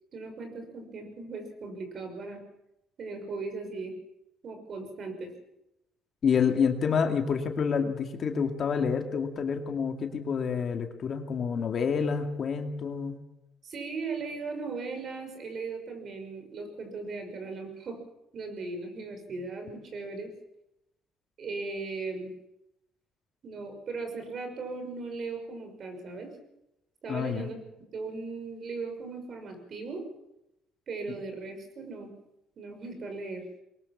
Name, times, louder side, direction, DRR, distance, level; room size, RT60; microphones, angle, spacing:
voice 1, 0.1-2.4 3.0-3.9 4.4-5.3 13.6-18.0 18.3-20.3 21.4-22.3 23.4-26.3 27.0-27.6 27.9-30.0 30.9-32.1 32.6-33.4, right 3 dB, 45° right, 6 dB, 5.9 m, -38 dB
voice 2, 6.2-13.2 27.1-27.5, left 6 dB, 45° left, 5 dB, 2.4 m, -28 dB
23.0 x 19.5 x 7.3 m, 0.87 s
cardioid pair, 120°, 0 cm